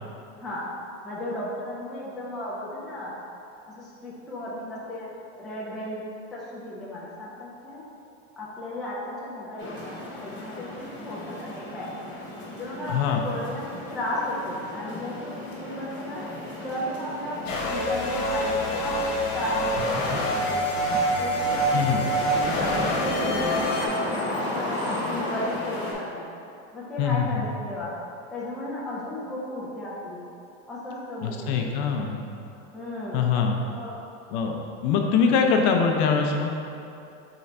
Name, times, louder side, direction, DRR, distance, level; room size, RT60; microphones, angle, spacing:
voice 1, 1.0-3.1 3.7-5.1 5.4-6.0 6.3-7.8 8.4-11.9 12.5-13.6 13.9-16.2 16.6-18.9 19.3-20.9 21.2-24.7 25.0-26.3 26.7-27.9 28.3-30.2 30.7-31.7 32.7-33.2 33.7-34.0, left 1 dB, ahead, -7 dB, 0.3 m, -34 dB
sound 1, 9.6-25.9, left 1 dB, 30° left, 1.0 m, -35 dB
voice 2, 12.9-13.2 21.7-22.1 27.0-27.5 31.2-32.2 33.1-33.6 34.3-36.5, left 6 dB, 50° left, 2 dB, 0.6 m, -23 dB
sound 2, 17.5-23.9, equal, 85° left, 1.1 m, -26 dB
3.8 x 3.4 x 4.1 m, 2.7 s
supercardioid pair, 130°, 38 cm